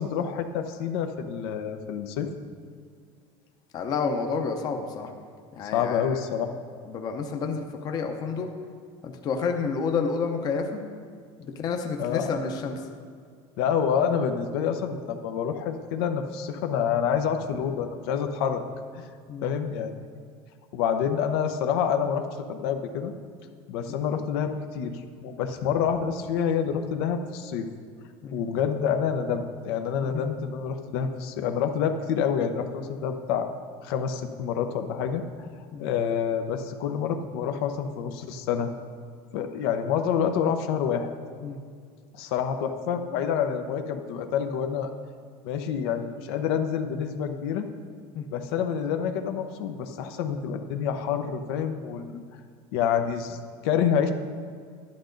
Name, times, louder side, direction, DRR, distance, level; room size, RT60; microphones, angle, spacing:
voice 1, 0.0-2.3 5.7-6.5 12.0-12.3 13.6-18.6 19.0-19.1 19.4-19.9 20.7-23.1 23.7-27.7 28.3-33.5 33.8-35.5 35.8-38.7 39.3-41.1 42.1-44.9 45.4-47.7 48.3-52.2 52.7-54.1, left 7 dB, 75° left, 6 dB, 0.9 m, -27 dB
voice 2, 3.7-5.1 5.5-6.2 6.9-8.5 9.0-10.8 11.4-12.8 19.3-19.4 23.9-24.0 28.2-28.4 30.0-30.2 35.7-35.9 41.4-41.6 48.1-48.3, left 5 dB, 30° left, 4 dB, 0.8 m, -30 dB
11.5 x 10.5 x 3.9 m, 2.1 s
cardioid pair, 175°, 13 cm